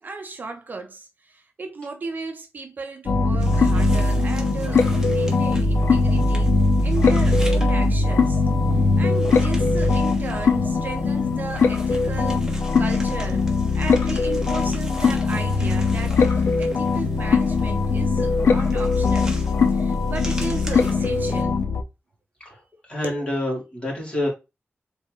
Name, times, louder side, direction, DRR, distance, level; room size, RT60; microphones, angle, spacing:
voice 1, 0.0-8.4 8.7-12.5 12.8-13.5 13.7-19.4 19.7-21.5 23.0-23.1, right 3 dB, 45° right, 0.6 m, -35 dB
sound 1, 3.1-21.8, left 3 dB, 90° left, 0.6 m, -20 dB
sound 2, 3.4-21.4, right 1 dB, 15° right, 1.1 m, -42 dB
voice 2, 22.9-24.3, left 1 dB, 25° left, 2.8 m, -27 dB
4.3 x 3.4 x 3.1 m
wide cardioid pair, 155°, 4 cm